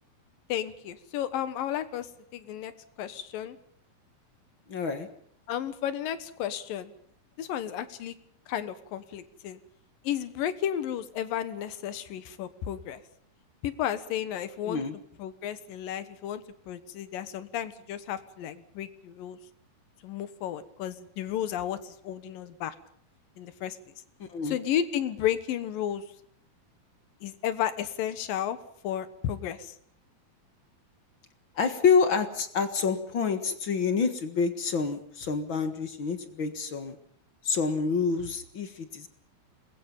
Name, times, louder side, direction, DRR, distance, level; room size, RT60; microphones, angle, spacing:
voice 1, 0.5-2.7 3.0-3.6 5.5-6.9 7.4-8.1 8.5-9.6 10.0-13.0 13.6-14.8 15.2-19.4 20.0-22.7 23.4-23.9 24.4-26.0 27.2-28.6 28.8-29.8, left 10 dB, 75° left, 13 dB, 2.9 m, -33 dB
voice 2, 4.7-5.1 14.7-14.9 24.2-24.6 31.6-37.0 37.4-39.1, left 5 dB, 50° left, 9 dB, 1.6 m, -27 dB
27.5 x 21.0 x 5.5 m, 0.62 s
omnidirectional pair, 4.2 m